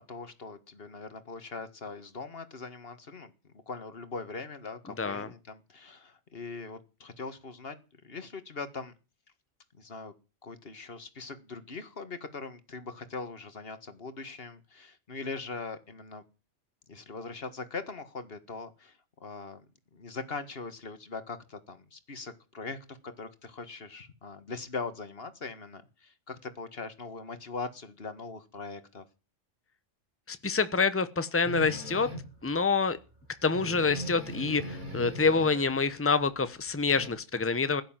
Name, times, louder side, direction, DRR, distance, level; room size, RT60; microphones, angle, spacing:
voice 1, 0.0-8.9 9.7-10.1 10.4-16.2 16.9-19.7 19.9-29.1, left 4 dB, 50° left, 11 dB, 2.0 m, -41 dB
voice 2, 5.0-5.3 30.3-32.1 32.4-33.0 33.4-37.8, left 4 dB, 10° left, 12 dB, 1.0 m, -27 dB
sound 1, 31.4-32.4 32.9-33.0 33.2-33.3 33.5-35.8 36.2-37.1, equal, 35° right, 5.5 m, -39 dB
16.5 x 11.5 x 7.5 m, 0.33 s
omnidirectional pair, 1.3 m